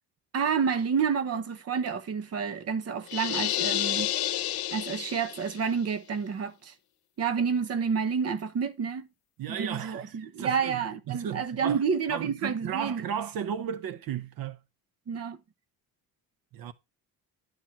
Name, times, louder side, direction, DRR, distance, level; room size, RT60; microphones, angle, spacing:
voice 1, 0.3-4.1 4.7-6.7 7.2-9.1 9.5-13.1 15.1-15.4, right 6 dB, 40° right, 1.0 m, -29 dB
sound 1, 3.1-5.6, left 14 dB, 70° left, 0.8 m, -30 dB
voice 2, 9.4-10.8 11.1-11.8 12.1-14.6 16.5-16.7, right 9 dB, 65° right, 0.9 m, -34 dB
11.0 x 4.4 x 5.8 m
cardioid pair, 155°, 38 cm